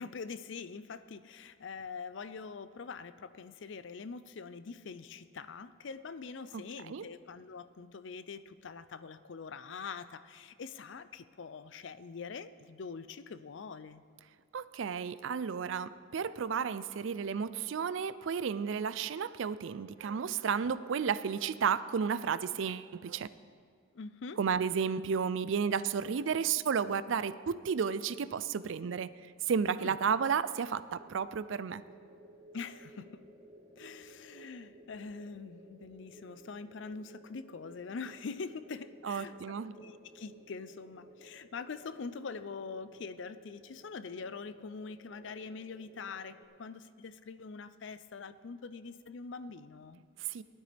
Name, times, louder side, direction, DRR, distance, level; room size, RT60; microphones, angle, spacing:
voice 1, 0.0-14.0 23.9-24.4 29.8-30.0 32.5-33.2 33.8-39.4 39.7-50.0, left 5 dB, 60° left, 14 dB, 0.5 m, -44 dB
voice 2, 6.5-7.1 14.5-23.3 24.4-29.1 29.5-31.8 39.0-39.7 50.2-50.4, right 6 dB, 65° right, 15 dB, 0.4 m, -32 dB
sound 1, 30.9-46.4, right 1 dB, 25° right, 2.0 m, -57 dB
18.5 x 12.5 x 3.4 m, 2.1 s
head